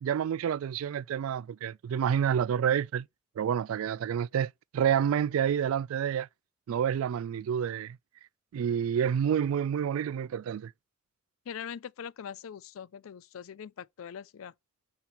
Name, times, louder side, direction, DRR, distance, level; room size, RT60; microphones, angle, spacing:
voice 1, 0.0-3.1 3.4-6.3 6.7-8.0 8.5-10.7, right 8 dB, 80° right, 0.3 m, -28 dB
voice 2, 11.5-14.5, left 7 dB, 75° left, 0.4 m, -42 dB
5.3 x 4.3 x 5.9 m
head